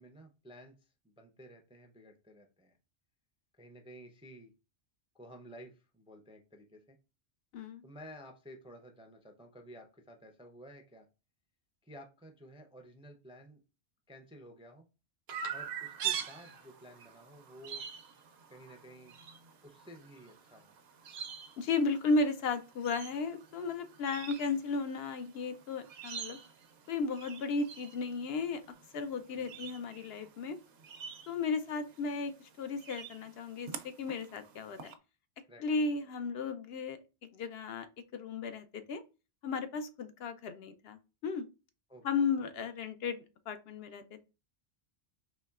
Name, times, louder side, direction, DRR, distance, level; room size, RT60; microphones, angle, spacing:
voice 1, 0.0-2.8 3.6-4.5 5.1-7.0 7.8-11.1 11.8-13.6 14.1-14.8 15.5-17.9 18.5-19.1 19.6-20.7 29.3-29.7 35.4-35.9 41.9-42.5, equal, 10° right, 4 dB, 0.4 m, -53 dB
Chirp tweet, 15.3-34.9, right 8 dB, 70° right, 0.8 m, -45 dB
voice 2, 21.6-26.4 26.9-28.6 28.9-30.6 31.3-34.9 35.6-37.0 37.3-37.9 38.1-39.0 39.4-41.5 42.0-44.2, left 4 dB, 70° left, 9 dB, 0.8 m, -34 dB
4.1 x 3.0 x 2.3 m, 0.30 s
omnidirectional pair, 1.1 m